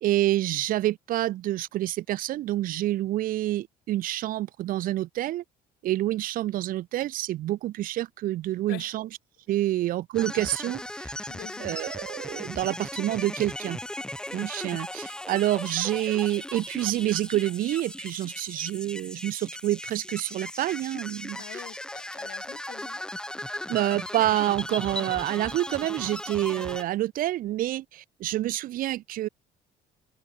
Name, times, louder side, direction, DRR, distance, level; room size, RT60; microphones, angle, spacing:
voice 1, 0.0-5.4 5.8-9.1 9.5-11.1 11.6-13.8 14.3-21.6 23.7-29.3, right 14 dB, 55° right, 0.4 m, -28 dB
sound 1, 10.1-26.8, left 1 dB, 5° left, 1.5 m, -37 dB
voice 2, 11.2-11.7 21.3-23.0, left 20 dB, 90° left, 2.0 m, -45 dB
open air
cardioid pair, 110°, 17 cm